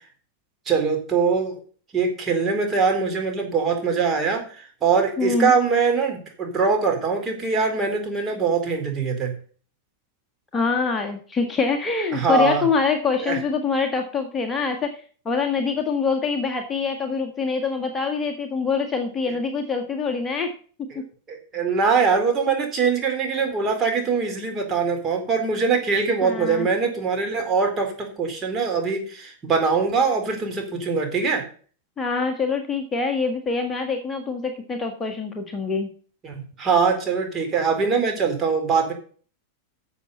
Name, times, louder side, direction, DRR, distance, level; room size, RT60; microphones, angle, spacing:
voice 1, 0.7-1.5 1.9-9.3 12.1-12.7 13.2-13.4 19.3-19.4 20.9-21.0 21.3-31.5 36.2-38.9, right 5 dB, 25° right, 2 dB, 3.9 m, -22 dB
voice 2, 5.2-5.5 10.5-20.5 26.2-26.7 32.0-35.9, left 5 dB, 20° left, 3 dB, 1.7 m, -25 dB
11.5 x 7.1 x 5.5 m, 0.42 s
figure-of-eight pair, 90°, 0 cm